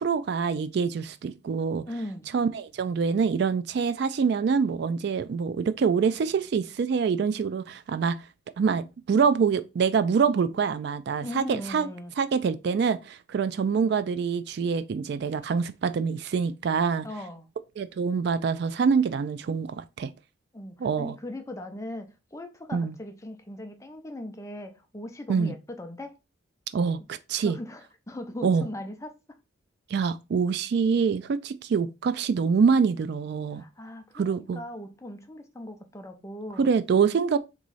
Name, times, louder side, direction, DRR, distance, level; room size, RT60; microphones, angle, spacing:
voice 1, 0.0-1.8 2.3-8.2 8.6-11.9 12.2-17.1 17.8-20.1 20.8-21.2 22.7-23.0 25.3-25.5 26.7-27.6 28.4-28.7 29.9-33.6 34.1-34.6 36.6-37.4, right 5 dB, 55° right, 0.3 m, -25 dB
voice 2, 1.9-2.3 11.2-12.1 17.0-17.5 20.5-26.2 27.4-29.1 33.5-36.7, left 1 dB, 15° left, 0.5 m, -39 dB
3.5 x 3.1 x 3.9 m
head